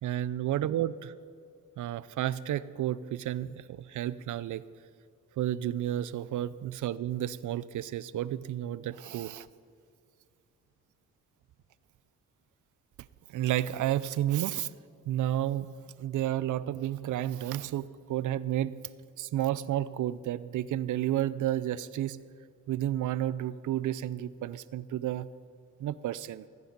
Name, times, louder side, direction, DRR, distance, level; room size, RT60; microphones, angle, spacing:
voice 1, 0.0-1.1 1.8-4.6 5.4-9.5 13.3-14.7 15.1-15.7 16.0-18.8 19.2-22.2 22.7-25.3 25.8-26.4, right 12 dB, 70° right, 17 dB, 0.5 m, -31 dB
14.5 x 9.8 x 5.3 m, 2.3 s
cardioid pair, 75°, 32 cm